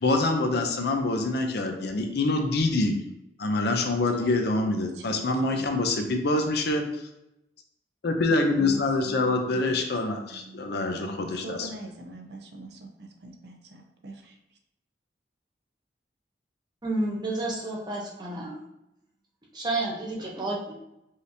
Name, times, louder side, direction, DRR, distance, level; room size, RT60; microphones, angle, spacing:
voice 1, 0.0-2.9 3.4-6.8 8.0-11.7, left 2 dB, 65° left, 4 dB, 0.5 m, -25 dB
voice 2, 4.7-5.2 5.5-6.3 8.6-9.9 10.3-10.7 11.4-14.4, right 2 dB, 65° right, 3 dB, 0.6 m, -43 dB
voice 3, 16.8-18.5 19.5-20.7, right 2 dB, 25° right, -3 dB, 0.9 m, -30 dB
4.9 x 2.8 x 2.7 m, 0.87 s
head